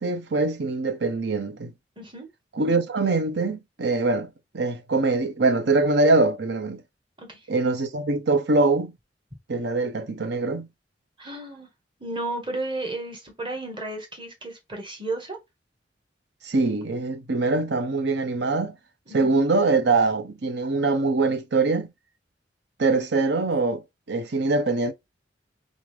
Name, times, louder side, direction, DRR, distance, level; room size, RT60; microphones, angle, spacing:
voice 1, 0.0-1.7 2.5-6.8 7.5-8.9 9.5-10.7 16.4-18.8 19.1-21.9 22.8-24.9, right 3 dB, 65° right, 0.8 m, -23 dB
voice 2, 2.0-2.3 7.2-7.4 11.2-11.7 12.0-15.4 19.1-19.3, right 2 dB, 30° right, 1.6 m, -33 dB
3.8 x 3.7 x 3.3 m
head